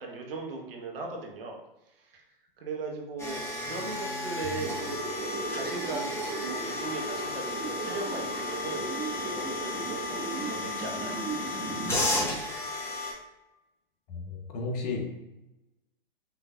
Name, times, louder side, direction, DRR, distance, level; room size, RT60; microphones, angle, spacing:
voice 1, 0.0-1.6 2.0-2.2 2.6-5.1 5.5-8.9 9.2-11.5, right 3 dB, 70° right, 1 dB, 1.2 m, -38 dB
sound 1, 3.2-13.1, left 2 dB, 10° left, 1.0 m, -34 dB
sound 2, 4.6-12.3, right 4 dB, 25° right, 1.4 m, -37 dB
voice 2, 14.1-15.1, left 3 dB, 45° left, 1 dB, 1.0 m, -33 dB
5.6 x 3.1 x 2.4 m, 0.96 s
hypercardioid pair, 115°, 29 cm